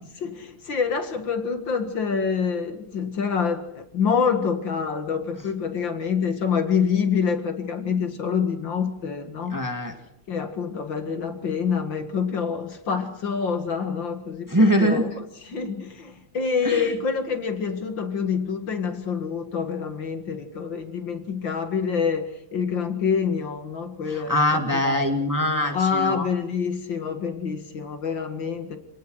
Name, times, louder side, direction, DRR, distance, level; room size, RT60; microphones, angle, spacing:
voice 1, 0.2-9.6 10.3-25.0 25.7-28.8, left 6 dB, 60° left, 7 dB, 2.5 m, -26 dB
voice 2, 9.5-9.9 14.5-15.1 16.6-16.9 24.1-26.3, equal, 10° right, 4 dB, 1.9 m, -22 dB
27.5 x 18.0 x 6.3 m, 0.79 s
omnidirectional pair, 2.3 m